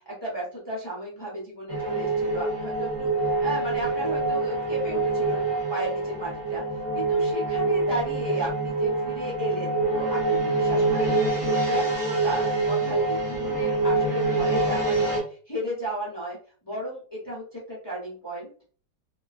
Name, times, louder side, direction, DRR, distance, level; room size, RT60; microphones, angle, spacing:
voice 1, 0.1-16.4 16.6-18.5, right 1 dB, 35° left, -6 dB, 0.4 m, -34 dB
sound 1, 1.7-15.2, right 2 dB, 20° right, 1.0 m, -25 dB
3.0 x 2.3 x 2.3 m, 0.42 s
omnidirectional pair, 2.0 m